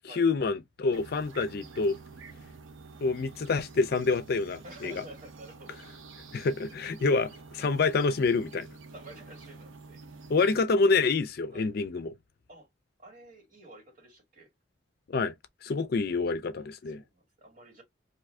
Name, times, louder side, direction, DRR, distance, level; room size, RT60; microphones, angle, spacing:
voice 1, 0.0-2.0 3.0-5.0 6.3-8.7 10.3-12.1 15.1-15.3 15.6-17.0, left 4 dB, 55° left, 0.4 m, -27 dB
sound 1, 0.9-10.6, right 4 dB, 90° right, 0.7 m, -48 dB
voice 2, 4.6-5.8 8.9-10.0 11.5-11.7 12.5-12.7 13.0-14.5 16.1-17.8, right 1 dB, 45° right, 2.1 m, -50 dB
2.7 x 2.5 x 3.3 m
head